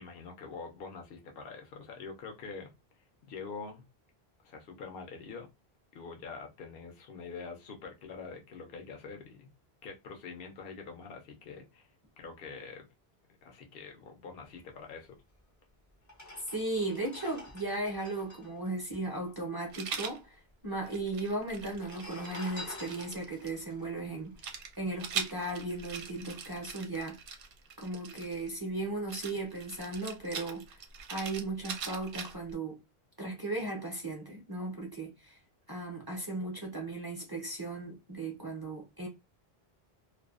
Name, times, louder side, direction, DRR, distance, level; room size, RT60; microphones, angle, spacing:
voice 1, 0.0-2.7 3.3-3.8 4.4-5.5 5.9-9.5 9.8-11.9 12.2-12.9 13.4-15.2, left 4 dB, 65° left, 0.9 m, -45 dB
sound 1, 15.4-15.5 16.0-19.7 20.0-20.1 20.2-20.9 21.6-25.1 25.6-25.8, left 2 dB, 25° left, 0.5 m, -49 dB
voice 2, 16.5-27.2 27.8-30.8 31.1-32.8 33.2-35.4 35.7-39.1, right 2 dB, 25° right, 0.6 m, -36 dB
Rattle, 19.7-20.2 20.8-23.5 24.4-28.5 29.1-32.5, right 6 dB, 65° right, 0.7 m, -41 dB
2.5 x 2.3 x 2.3 m
omnidirectional pair, 1.0 m